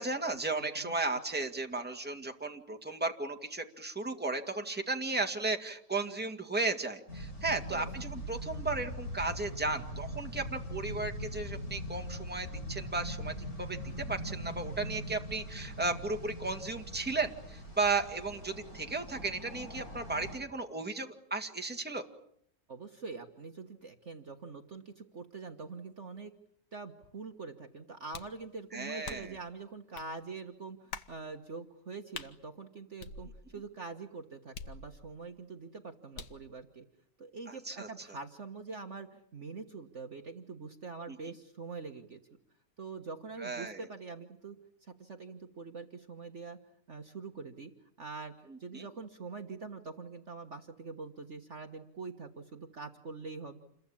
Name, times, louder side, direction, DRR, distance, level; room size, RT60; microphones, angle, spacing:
voice 1, 0.0-22.1 28.7-29.3 37.7-37.9 43.4-43.8 48.5-48.9, right 3 dB, 5° right, 4 dB, 2.0 m, -35 dB
voice 2, 0.6-0.9 7.7-8.1 22.7-26.3 26.7-36.8 37.2-42.2 42.8-46.6 46.9-47.7 48.0-53.6, right 4 dB, 45° right, 5 dB, 1.7 m, -44 dB
sound 1, 7.1-20.3, equal, 55° left, 6.7 m, -41 dB
sound 2, 28.1-28.4 29.0-29.4 29.9-30.1 30.9-31.2 32.1-32.3 33.0-33.6 34.5-35.2 36.1-36.5, left 5 dB, 70° left, 1.9 m, -45 dB
29.0 x 22.5 x 8.7 m, 0.68 s
omnidirectional pair, 1.9 m